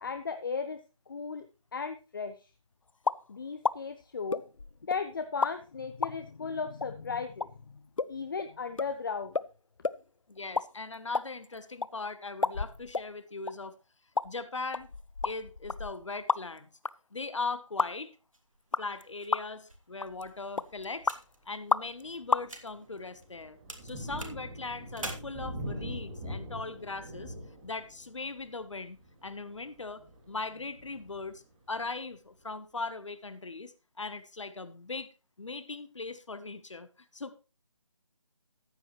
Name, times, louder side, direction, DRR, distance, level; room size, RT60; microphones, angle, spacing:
voice 1, 0.0-2.5 3.3-4.4 4.8-7.8 8.1-9.4, left 5 dB, 40° left, 9 dB, 0.8 m, -36 dB
sound 1, 3.0-3.2 3.6-3.8 4.3-5.0 5.4-5.5 6.0-6.1 6.8-6.9 7.4-7.5 8.0-8.1 8.4-8.5 8.8-8.9 9.3-9.5 9.8-10.0 10.4-10.7 10.9-11.9 12.4-13.1 13.5-13.6 14.2-14.3 14.7-16.6 16.8-16.9 17.8-17.9 18.7-19.0 19.3-19.6 20.0-20.2 20.6-21.2 21.7-22.0 22.3-22.4, left 4 dB, 80° left, 0.5 m, -30 dB
voice 2, 10.3-13.8 14.2-14.9 15.2-16.7 17.1-18.1 18.8-21.2 21.5-23.6 23.8-27.3 27.6-31.4 31.7-35.1 35.4-37.4, left 3 dB, 65° left, 13 dB, 1.2 m, -39 dB
sound 2, 18.3-23.4 23.7-25.1, right 2 dB, 80° right, 2.8 m, -47 dB
Thunder, 20.1-20.4 21.0-21.1 21.6-32.1, equal, 20° right, 2.2 m, -44 dB
14.0 x 8.8 x 3.2 m, 0.31 s
figure-of-eight pair, 155°, 17 cm